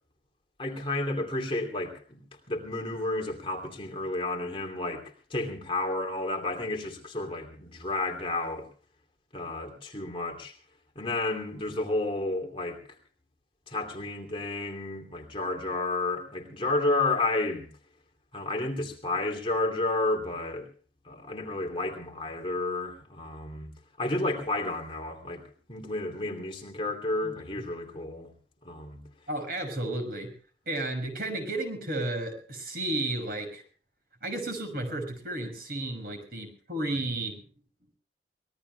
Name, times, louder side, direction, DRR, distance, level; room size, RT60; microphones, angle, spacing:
voice 1, 0.6-8.7 9.3-10.5 10.9-12.8 13.7-17.7 18.3-20.7 21.0-23.7 24.0-25.4 25.7-28.3 28.6-29.0, left 2 dB, 30° left, 2 dB, 2.8 m, -31 dB
voice 2, 29.3-30.3 30.7-33.6 34.2-37.5, right 1 dB, 55° right, 5 dB, 6.2 m, -33 dB
25.0 x 20.5 x 2.3 m, 0.39 s
head